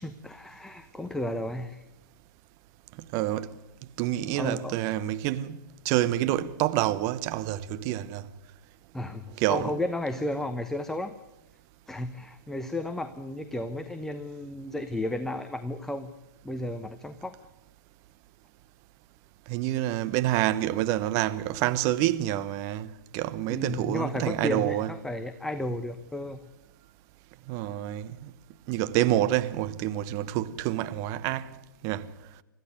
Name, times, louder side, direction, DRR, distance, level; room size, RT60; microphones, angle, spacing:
voice 1, 0.0-1.8 4.4-4.7 8.9-11.1 11.9-16.1 16.4-17.4 23.5-26.5, left 1 dB, 5° left, 0.9 m, -33 dB
voice 2, 3.1-3.5 4.0-5.6 5.8-8.3 9.4-9.7 19.5-24.9 27.5-28.3 28.7-31.5 31.8-32.1, right 14 dB, 30° right, 1.0 m, -27 dB
25.5 x 15.0 x 9.5 m
figure-of-eight pair, 120°, 11 cm